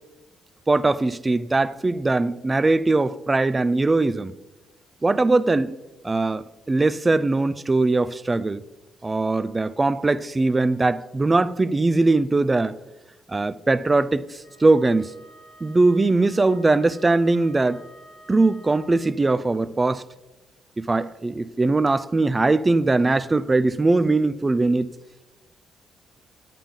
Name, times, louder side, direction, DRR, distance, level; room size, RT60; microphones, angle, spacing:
voice 1, 0.7-4.4 5.0-5.8 6.0-8.6 9.0-12.8 13.3-15.1 15.6-17.8 18.3-20.0 20.8-24.9, right 3 dB, 20° right, 0.4 m, -21 dB
Wind instrument woodwind instrument, 14.4-19.1, equal, 85° left, 2.3 m, -50 dB
9.1 x 8.5 x 3.8 m
cardioid pair, 90°, 0 cm